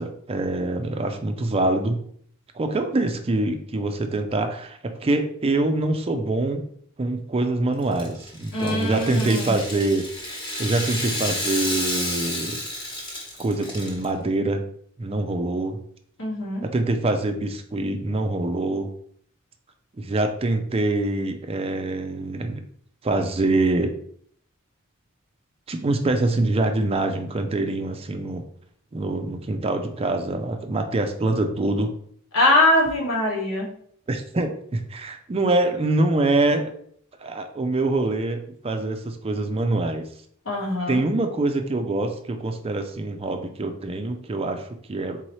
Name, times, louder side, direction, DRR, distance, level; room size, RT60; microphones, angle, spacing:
voice 1, 0.0-2.0 2.5-6.6 7.0-12.6 13.4-14.6 15.0-15.8 16.6-18.9 20.0-22.6 23.0-23.9 25.7-28.4 28.9-31.9 34.1-36.7 37.2-40.1 40.9-45.2, right 2 dB, 30° right, 6 dB, 0.4 m, -25 dB
Rattle (instrument), 7.8-14.0, left 1 dB, 25° left, 1.1 m, -31 dB
voice 2, 8.5-9.5 16.2-16.6 32.3-33.7 40.4-41.0, left 1 dB, 70° left, -2 dB, 1.4 m, -22 dB
4.2 x 3.7 x 3.1 m, 0.62 s
head